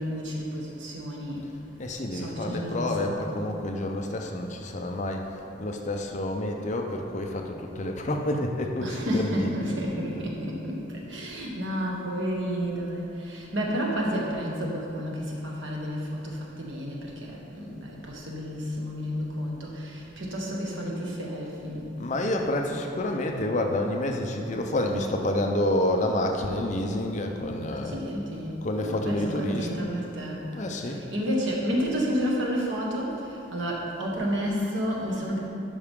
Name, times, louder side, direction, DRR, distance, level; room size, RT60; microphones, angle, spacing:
voice 1, 0.0-1.5 2.1-3.4 8.8-21.9 27.8-28.6 28.8-30.4 30.7-35.5, equal, 70° right, -3 dB, 1.3 m, -31 dB
voice 2, 1.8-5.2 5.6-9.5 9.9-10.0 22.0-28.0 28.6-29.8 30.5-31.0, left 1 dB, 35° left, 3 dB, 0.5 m, -28 dB
11.5 x 4.8 x 3.6 m, 2.8 s
head